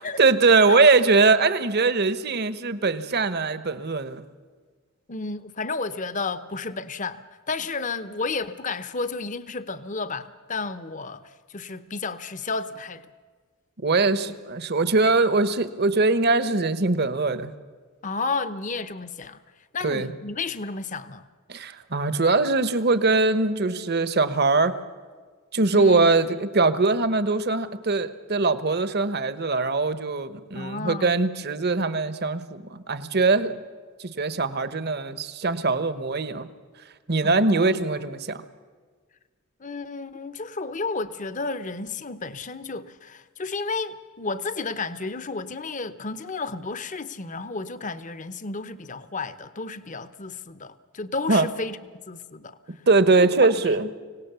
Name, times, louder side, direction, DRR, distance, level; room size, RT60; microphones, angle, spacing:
voice 1, 0.2-4.2 13.8-17.5 19.8-20.1 21.5-24.7 25.5-33.6 34.0-36.5 37.1-38.4 51.3-51.5 52.9-53.9, right 3 dB, 50° right, 1.1 m, -22 dB
voice 2, 5.1-13.1 18.0-19.4 19.7-21.2 25.7-26.1 30.5-31.2 37.2-37.8 39.6-51.8 52.1-52.8 53.2-53.3, left 3 dB, 35° left, 0.8 m, -32 dB
25.0 x 18.0 x 7.0 m
head